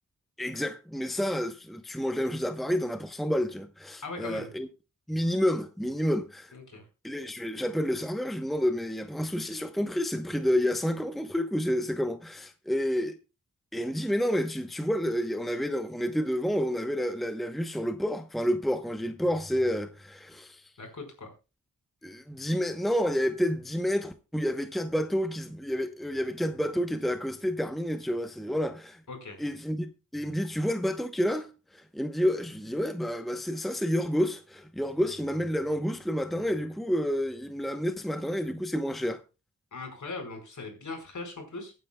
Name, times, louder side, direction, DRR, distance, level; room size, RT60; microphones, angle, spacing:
voice 1, 0.4-4.7 5.1-6.5 7.0-13.1 13.7-20.6 22.0-29.0 29.4-31.5 31.7-39.2, equal, ahead, 0.9 m, -29 dB
voice 2, 4.0-4.5 6.5-6.8 20.8-21.3 29.1-29.4 39.7-41.7, left 3 dB, 65° left, 4.7 m, -39 dB
23.5 x 9.3 x 2.3 m
wide cardioid pair, 85°, 33 cm